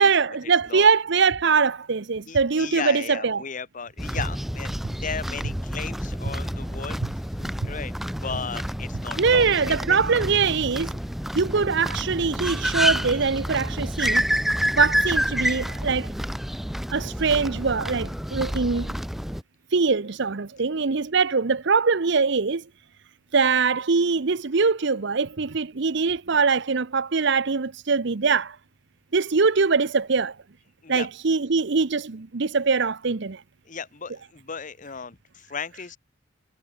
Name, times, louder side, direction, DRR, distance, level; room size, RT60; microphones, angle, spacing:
voice 1, 0.0-3.4 7.0-7.1 9.2-11.0 11.3-14.2 14.8-16.1 16.9-18.9 19.7-22.7 23.3-28.6 29.1-30.4 30.9-33.4, right 5 dB, 60° right, 0.8 m, -22 dB
voice 2, 2.3-7.0 7.4-10.2 30.8-31.1 33.7-36.0, left 5 dB, 40° left, 1.0 m, -35 dB
sound 1, 4.0-19.4, equal, ahead, 0.4 m, -28 dB
head